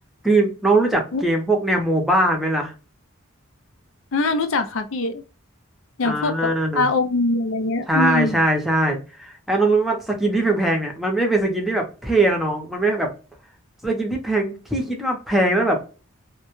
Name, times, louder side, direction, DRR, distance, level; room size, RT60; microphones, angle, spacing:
voice 1, 0.2-2.7 6.0-6.9 7.9-13.1 13.8-15.8, right 2 dB, ahead, 1 dB, 0.5 m, -21 dB
voice 2, 4.1-5.2 6.0-8.4, left 2 dB, 70° left, 8 dB, 0.5 m, -23 dB
2.1 x 2.1 x 3.0 m, 0.33 s
head